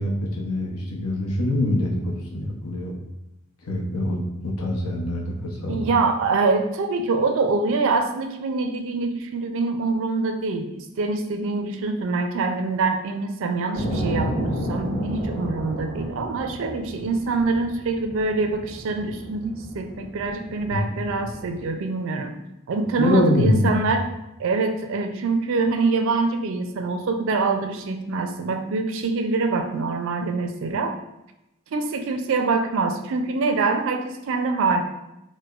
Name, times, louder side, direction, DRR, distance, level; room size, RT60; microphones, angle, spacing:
voice 1, 0.0-2.9 3.6-5.9 20.7-20.9 23.0-23.8, left 1 dB, 85° left, -1 dB, 0.7 m, -24 dB
voice 2, 5.7-22.4 22.7-24.1 24.4-31.0 31.7-34.8, right 3 dB, 60° right, 5 dB, 0.4 m, -25 dB
sound 1, 13.7-21.7, equal, 35° left, 1.3 m, -32 dB
4.7 x 2.1 x 2.3 m, 0.90 s
head